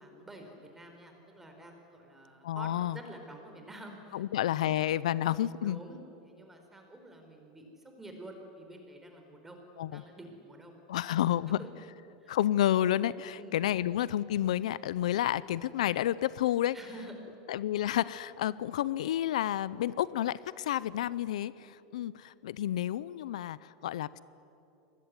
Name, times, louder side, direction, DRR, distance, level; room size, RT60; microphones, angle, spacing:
voice 1, 0.0-4.2 4.5-4.8 5.6-10.8 11.5-11.7 12.2-12.4 13.4-13.6 16.7-17.1, right 1 dB, 10° right, 4 dB, 4.5 m, -49 dB
voice 2, 2.4-3.0 4.1-5.8 9.8-10.0 10.9-11.6 12.3-16.8 17.5-24.2, left 12 dB, 85° left, 19 dB, 0.7 m, -30 dB
25.5 x 20.5 x 9.7 m, 2.9 s
supercardioid pair, 140°, 4 cm